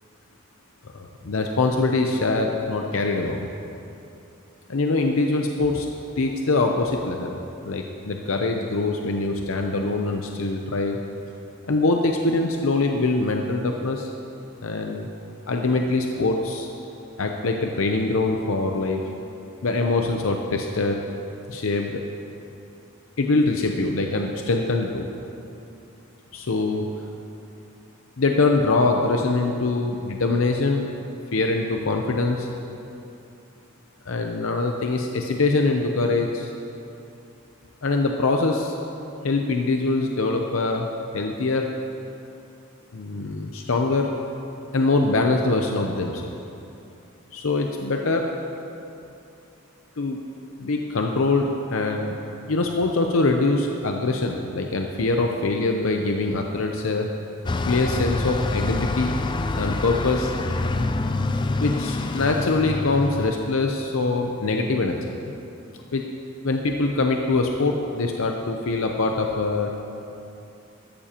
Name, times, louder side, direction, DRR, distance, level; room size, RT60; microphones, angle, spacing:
voice 1, 0.9-3.4 4.7-5.9 6.2-7.4 7.6-11.0 11.7-14.1 14.6-15.1 15.5-16.7 17.2-19.1 19.6-21.0 21.5-22.0 23.2-25.1 26.3-26.9 28.2-30.9 31.3-32.5 34.1-36.5 37.8-38.7 39.2-40.9 41.1-41.7 42.9-44.1 44.7-46.3 47.3-48.3 50.0-50.2 50.6-52.2 52.5-57.1 57.6-59.2 59.6-60.3 61.6-65.3 65.9-66.0 66.4-69.9, left 3 dB, 75° left, 3 dB, 0.7 m, -23 dB
Bus, 57.5-63.4, left 2 dB, 20° left, 0.3 m, -26 dB
14.0 x 13.5 x 2.9 m, 2.8 s
head